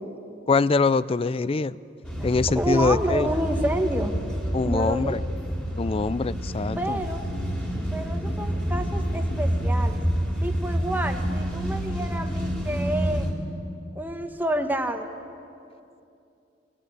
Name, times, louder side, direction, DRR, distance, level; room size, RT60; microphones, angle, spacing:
voice 1, 0.5-1.8 2.2-3.3 4.5-5.2 5.8-7.0, left 4 dB, 30° left, 18 dB, 0.4 m, -23 dB
sound 1, 2.0-13.3, equal, 5° left, 3.1 m, -28 dB
voice 2, 2.5-4.1 4.6-5.2 6.8-7.2 7.9-10.0 10.4-13.3 13.9-15.1, right 1 dB, 10° right, 5 dB, 1.3 m, -29 dB
23.0 x 15.0 x 9.1 m, 2.6 s
head